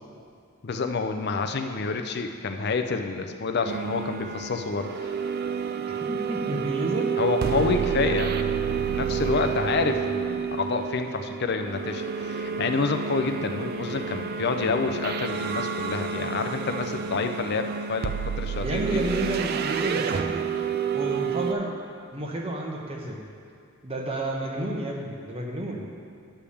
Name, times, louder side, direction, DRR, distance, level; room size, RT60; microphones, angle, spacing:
voice 1, 0.6-4.9 7.2-8.4 8.8-19.0, left 4 dB, 50° left, 6 dB, 0.5 m, -28 dB
sound 1, 3.6-21.5, right 6 dB, 45° right, 0.3 m, -29 dB
voice 2, 6.0-7.1 18.6-20.5 20.9-21.8 22.1-23.3 23.8-25.9, right 1 dB, 25° right, 0 dB, 0.9 m, -31 dB
10.0 x 3.4 x 7.0 m, 2.3 s
head